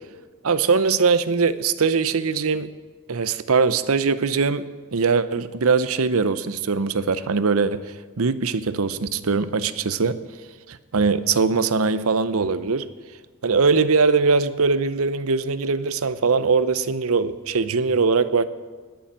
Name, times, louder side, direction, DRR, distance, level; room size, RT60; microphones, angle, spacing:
voice 1, 0.4-2.7 3.1-4.6 4.9-10.2 10.7-12.8 13.4-18.4, right 4 dB, 75° right, 14 dB, 0.7 m, -21 dB
19.0 x 7.1 x 7.3 m, 1.4 s
head